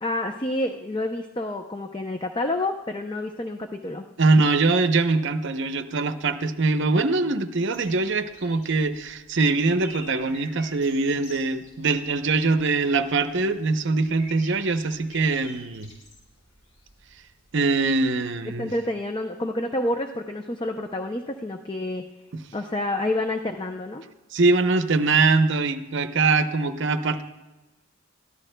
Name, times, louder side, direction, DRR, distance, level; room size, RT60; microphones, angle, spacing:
voice 1, 0.0-4.1 18.6-22.1 22.5-24.0, left 1 dB, 20° left, 5 dB, 0.5 m, -28 dB
voice 2, 4.2-15.9 17.5-18.7 24.3-27.2, right 3 dB, 55° right, 9 dB, 0.7 m, -22 dB
sound 1, 7.7-18.2, left 1 dB, 80° left, 4.9 m, -48 dB
20.5 x 14.0 x 2.2 m, 1.1 s
head